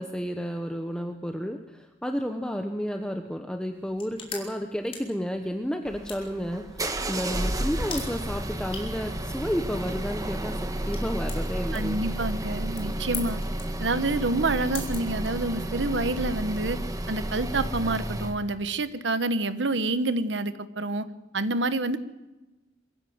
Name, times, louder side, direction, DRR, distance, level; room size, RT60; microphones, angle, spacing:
voice 1, 0.0-12.0, equal, 5° left, 5 dB, 1.0 m, -31 dB
sound 1, 3.7-15.8, left 5 dB, 30° left, 4.4 m, -44 dB
sound 2, 5.9-18.4, right 1 dB, 20° right, 1.5 m, -32 dB
voice 2, 11.7-13.4 13.8-16.8 17.1-21.1 21.3-22.0, right 2 dB, 85° right, 12 dB, 1.3 m, -27 dB
23.5 x 15.5 x 8.0 m, 1.1 s
head